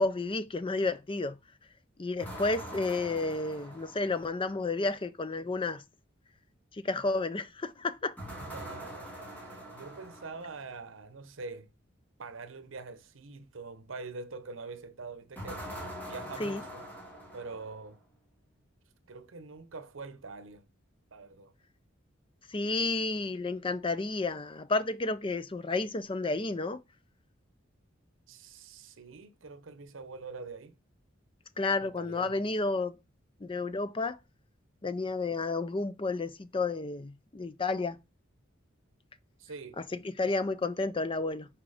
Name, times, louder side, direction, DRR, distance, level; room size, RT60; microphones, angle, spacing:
voice 1, 0.0-1.4 2.0-5.8 6.7-8.1 16.4-16.6 22.5-26.8 31.6-32.9 33.4-34.2 34.8-38.0 39.9-41.5, left 3 dB, 25° left, 0.5 m, -31 dB
sound 1, 2.2-4.5 8.2-10.7 15.4-18.0, equal, 10° left, 2.6 m, -43 dB
voice 2, 8.4-11.7 12.2-15.7 16.0-16.9 17.3-18.0 19.1-20.7 21.1-21.5 28.3-30.8 31.8-32.4 39.4-39.8, right 3 dB, 85° right, 0.8 m, -44 dB
5.9 x 4.6 x 5.0 m
head